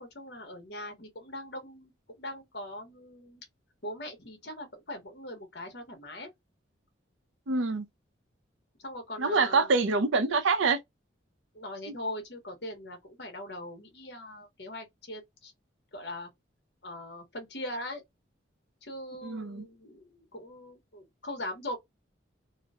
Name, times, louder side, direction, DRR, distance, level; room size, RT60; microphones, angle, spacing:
voice 1, 0.0-1.9 2.2-3.4 3.8-6.3 8.8-9.7 11.5-15.5 15.9-16.3 16.8-18.0 18.8-21.8, left 1 dB, 60° left, 1.0 m, -41 dB
voice 2, 7.5-7.9 9.2-10.8 11.9-12.0 19.2-19.6, right 4 dB, 80° right, 0.6 m, -26 dB
2.9 x 2.0 x 2.4 m
head